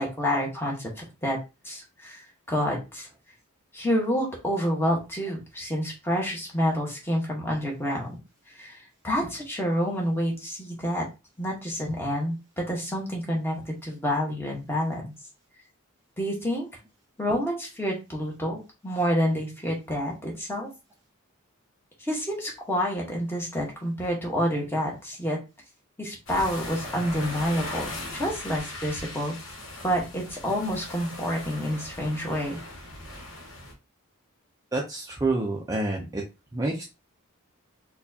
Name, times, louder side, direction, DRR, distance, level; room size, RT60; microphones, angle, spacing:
voice 1, 0.0-1.4 1.6-2.2 2.5-3.1 3.7-8.1 8.6-11.0 11.4-15.1 16.2-16.7 17.2-20.7 22.0-25.4 26.0-29.3 29.8-32.6, equal, 10° left, -1 dB, 1.1 m, -28 dB
sound 1, 26.3-33.7, left 1 dB, 65° left, 1.2 m, -39 dB
voice 2, 34.7-36.2 36.5-36.8, right 2 dB, 15° right, -1 dB, 0.5 m, -28 dB
4.3 x 2.3 x 2.7 m, 0.27 s
head